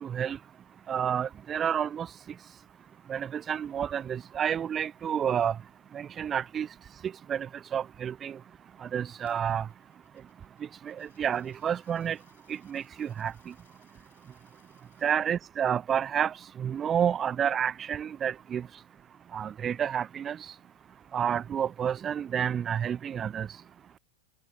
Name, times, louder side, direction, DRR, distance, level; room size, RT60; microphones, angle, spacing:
voice 1, 0.0-0.4 0.9-2.1 3.1-5.6 5.9-6.7 7.0-8.4 8.8-9.7 10.8-12.2 12.5-13.5 15.0-18.7 19.3-20.4 21.1-23.5, right 8 dB, 25° right, 0.5 m, -30 dB
Coin (dropping), 9.2-15.2, left 11 dB, 60° left, 7.9 m, -67 dB
figure-of-eight pair, 90°, 0 cm